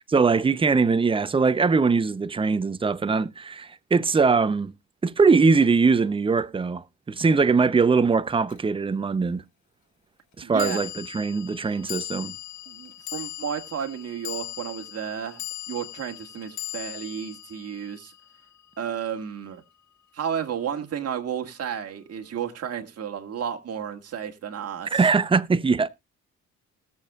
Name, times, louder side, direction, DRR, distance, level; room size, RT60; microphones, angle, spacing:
voice 1, 0.1-4.7 5.0-9.4 10.4-12.3 24.9-25.9, right 4 dB, 20° right, 0.6 m, -21 dB
sound 1, 8.5-8.6 10.6-19.0, left 15 dB, 70° left, 1.1 m, -39 dB
voice 2, 10.4-10.8 12.7-15.4 15.7-18.1 18.8-19.6 20.1-25.0, right 8 dB, 55° right, 1.8 m, -32 dB
20.0 x 6.9 x 2.3 m
cardioid pair, 90°, 30 cm